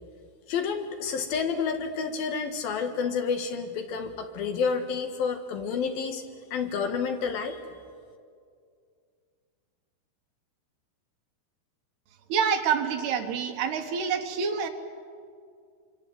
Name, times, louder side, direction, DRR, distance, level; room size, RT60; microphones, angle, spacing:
voice 1, 0.5-6.2 6.5-7.6, left 5 dB, 65° left, 5 dB, 3.2 m, -29 dB
voice 2, 12.3-14.7, right 6 dB, 80° right, 5 dB, 3.6 m, -27 dB
26.5 x 25.0 x 7.8 m, 2.2 s
omnidirectional pair, 4.7 m